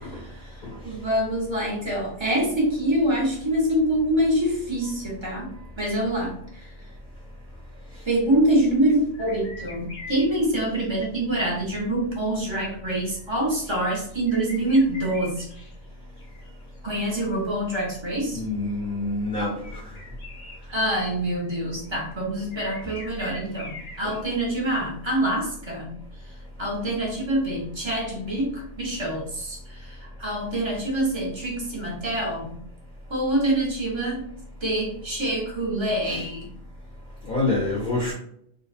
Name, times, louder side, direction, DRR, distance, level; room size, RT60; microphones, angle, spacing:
voice 1, 0.8-6.7 8.0-15.5 16.8-18.4 20.7-25.9 26.6-32.6 33.1-34.3 34.6-36.5, right 1 dB, 30° right, -3 dB, 0.6 m, -25 dB
sound 1, 9.1-10.3 10.8-11.1 13.1-15.9 16.2-16.9 19.6-21.1 21.3-22.1 22.5-24.2, left 2 dB, 85° left, 1.2 m, -43 dB
voice 2, 18.3-19.8 24.0-24.1 36.0-36.2 37.2-38.1, left 2 dB, 50° left, -5 dB, 0.7 m, -27 dB
2.6 x 2.0 x 2.4 m, 0.67 s
omnidirectional pair, 1.2 m